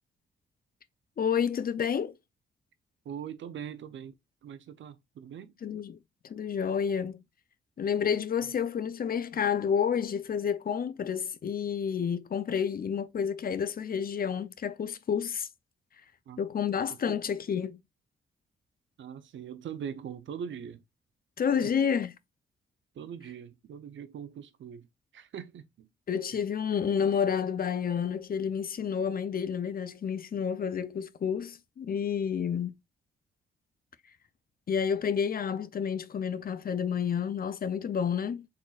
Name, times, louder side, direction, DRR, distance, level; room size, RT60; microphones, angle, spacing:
voice 1, 1.2-2.1 5.6-6.0 6.2-7.2 7.8-15.5 16.4-17.8 21.4-22.1 26.1-32.7 34.7-38.5, left 7 dB, 45° left, 0.5 m, -30 dB
voice 2, 3.0-4.1 4.4-5.6 16.3-16.4 16.9-17.2 19.0-20.8 21.6-21.7 22.9-24.9 25.1-25.9 26.3-26.4, right 8 dB, 65° right, 0.6 m, -41 dB
4.3 x 3.8 x 2.4 m
cardioid pair, 65°, 21 cm